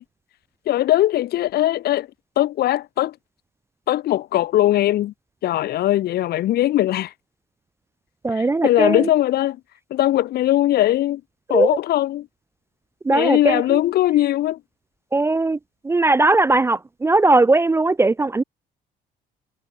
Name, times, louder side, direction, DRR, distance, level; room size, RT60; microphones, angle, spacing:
voice 1, 0.7-2.1 2.4-3.1 3.9-5.1 5.4-7.1 8.3-9.6 9.9-11.2 11.5-12.2 13.1-14.6, left 14 dB, 70° left, 3.1 m, -20 dB
voice 2, 8.2-9.1 11.5-11.7 13.0-13.8 15.1-15.6 15.8-18.4, right 2 dB, 15° right, 0.6 m, -18 dB
cardioid pair, 110°, 17 cm